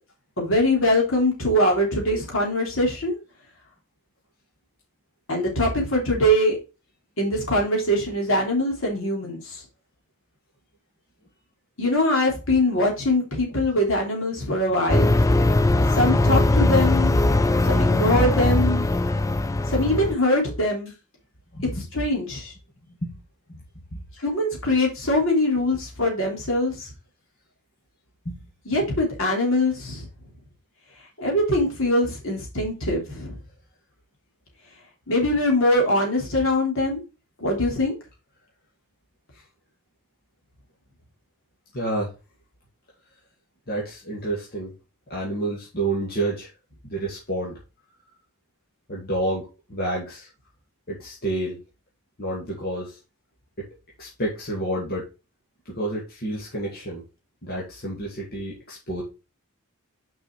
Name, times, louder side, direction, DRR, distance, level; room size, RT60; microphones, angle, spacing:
voice 1, 0.4-3.2 5.3-6.6 7.2-9.6 11.8-15.1 15.9-17.1 17.6-18.8 19.7-20.9 21.9-22.5 24.2-26.9 28.7-30.1 31.2-33.4 35.1-37.0 37.4-37.9, left 1 dB, 60° left, 0 dB, 3.1 m, -22 dB
sound 1, 14.9-20.1, left 2 dB, 15° left, 0.3 m, -20 dB
voice 2, 21.5-21.9 23.0-23.1 23.5-23.6 23.9-24.0 28.2-28.4 39.3-39.4 41.7-42.1 43.7-44.7 45.1-46.5 46.8-47.6 48.9-50.3 50.9-51.6 52.2-53.0 53.6-53.7 54.0-55.1 55.7-57.0 57.4-59.0, right 1 dB, 45° left, -4 dB, 2.3 m, -29 dB
6.2 x 5.4 x 4.7 m, 0.29 s
head